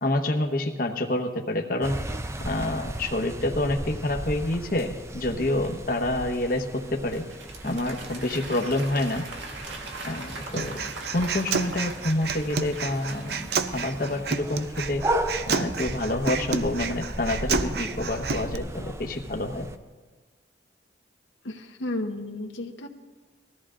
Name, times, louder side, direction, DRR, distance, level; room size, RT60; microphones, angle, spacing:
voice 1, 0.0-2.0 2.4-6.6 6.9-7.2 7.6-9.2 10.0-15.0 15.5-19.7, left 1 dB, 50° left, 3 dB, 1.0 m, -28 dB
sound 1, 1.8-19.8, right 1 dB, 15° right, 0.5 m, -36 dB
Applause / Crowd, 6.8-14.6, right 3 dB, 85° right, 1.8 m, -41 dB
Human voice, 10.6-18.5, right 5 dB, 60° right, 0.6 m, -30 dB
voice 2, 21.4-22.9, left 1 dB, 85° left, 4 dB, 1.1 m, -33 dB
20.0 x 14.0 x 3.8 m, 1.3 s
head